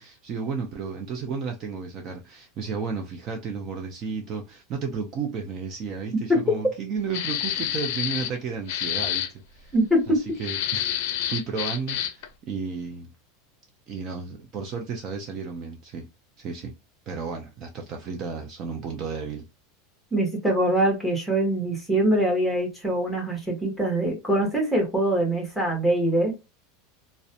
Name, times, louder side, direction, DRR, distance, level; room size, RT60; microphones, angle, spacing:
voice 1, 0.0-9.7 10.1-13.1 13.9-16.1 16.4-16.7 17.1-19.4, right 5 dB, 35° right, 0.4 m, -33 dB
sound 1, 7.1-8.4 8.7-9.3 10.4-12.3, left 11 dB, 60° left, 0.5 m, -28 dB
voice 2, 9.7-10.2 20.1-26.3, right 1 dB, ahead, 1.0 m, -23 dB
2.4 x 2.1 x 2.6 m
supercardioid pair, 160°, 0 cm